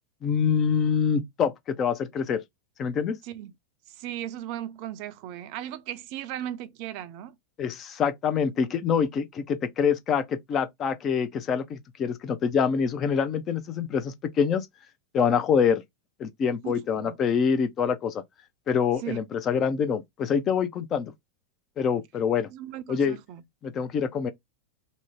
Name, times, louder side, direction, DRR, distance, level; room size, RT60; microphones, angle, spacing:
voice 1, 0.2-2.4 2.8-3.2 7.6-14.7 15.1-15.8 16.2-18.2 18.7-21.1 21.8-22.5 22.9-23.2 23.6-24.3, left 6 dB, 30° left, 0.4 m, -25 dB
voice 2, 3.9-7.3 16.6-17.2 19.0-19.2 22.5-23.4, right 11 dB, 45° right, 0.3 m, -37 dB
2.6 x 2.1 x 2.8 m
figure-of-eight pair, 90°, 0 cm